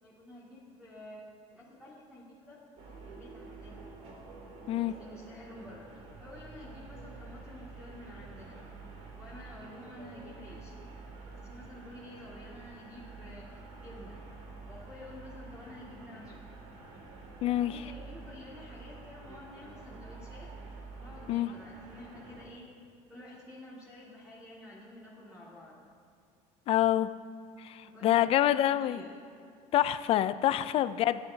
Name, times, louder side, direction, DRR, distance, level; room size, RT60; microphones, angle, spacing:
voice 1, 0.0-1.2 1.5-3.8 4.8-8.6 9.1-10.7 11.1-14.2 14.6-16.5 17.4-20.5 20.9-22.7 23.1-25.8 27.8-29.1, left 1 dB, 10° right, -9 dB, 2.0 m, -50 dB
sound 1, 2.8-22.5, right 3 dB, 70° right, 2.3 m, -48 dB
voice 2, 17.4-17.8 21.3-21.5 26.7-27.1 27.6-29.0 29.7-31.2, left 12 dB, 45° left, 14 dB, 0.3 m, -26 dB
19.0 x 10.5 x 2.7 m, 2.4 s
cardioid pair, 155°, 14 cm